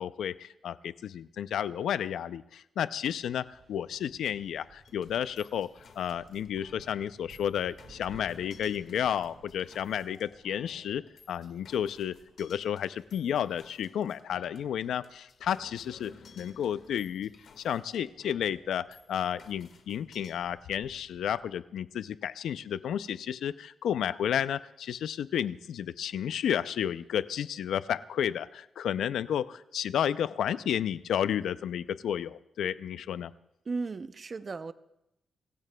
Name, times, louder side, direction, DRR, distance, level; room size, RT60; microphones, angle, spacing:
voice 1, 0.0-5.7 6.0-11.0 11.3-17.3 17.6-33.3, left 9 dB, 85° left, 15 dB, 0.4 m, -32 dB
sound 1, 3.5-13.6 15.3-21.5, right 4 dB, 50° right, 2.5 m, -60 dB
sound 2, 4.8-20.3, left 5 dB, 65° left, 1.7 m, -55 dB
voice 2, 33.7-34.7, right 4 dB, 35° right, 13 dB, 0.5 m, -35 dB
25.0 x 15.5 x 2.2 m, 0.87 s
cardioid pair, 115°, 0 cm